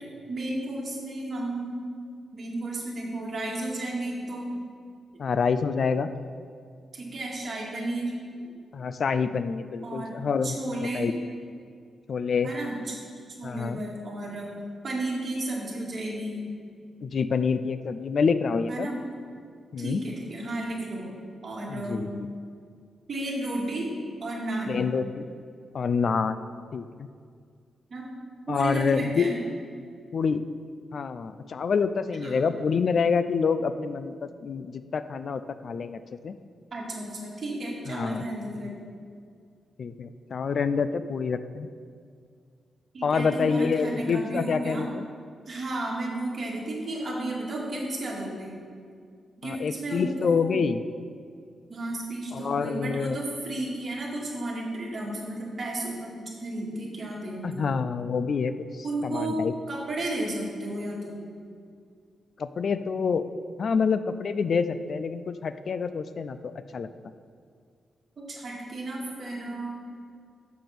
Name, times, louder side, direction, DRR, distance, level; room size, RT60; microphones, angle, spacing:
voice 1, 0.3-1.8 2.3-4.5 6.9-8.1 8.4-8.5 9.8-10.2 10.4-11.1 12.4-13.0 13.3-14.6 14.8-16.5 18.7-19.0 19.8-21.1 21.4-22.1 23.1-23.9 24.2-24.9 27.9-28.1 28.5-29.4 32.2-32.5 36.7-38.9 42.9-44.9 45.4-48.5 49.4-50.5 51.7-57.7 58.8-59.4 59.7-61.3 68.2-69.7, right 1 dB, 45° right, -3 dB, 2.2 m, -33 dB
voice 2, 5.2-6.1 8.7-10.6 10.9-11.1 12.1-12.5 13.4-13.8 17.0-18.9 19.7-20.0 21.7-22.3 24.7-25.3 25.7-26.4 26.7-27.1 28.5-29.3 30.1-30.4 30.9-36.3 37.9-38.2 39.8-41.7 43.0-45.1 49.4-50.8 52.3-53.2 57.4-59.5 62.4-63.2 63.6-66.9, left 5 dB, 55° left, 12 dB, 0.3 m, -27 dB
7.4 x 6.7 x 5.9 m, 2.2 s
cardioid pair, 115°, 0 cm